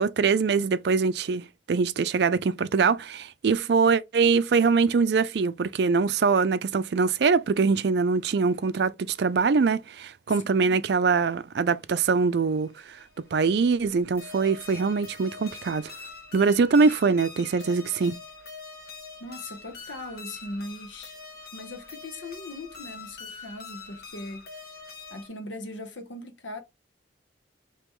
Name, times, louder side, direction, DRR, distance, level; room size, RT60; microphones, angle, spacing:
voice 1, 0.0-12.7 13.2-15.9 16.3-18.2, right 5 dB, 65° right, 0.4 m, -23 dB
voice 2, 10.3-10.9 19.2-21.2 21.5-24.7 25.1-26.6, left 1 dB, 85° left, 1.0 m, -40 dB
sound 1, 12.6-25.3, left 4 dB, 55° left, 1.3 m, -44 dB
3.6 x 3.0 x 4.4 m
head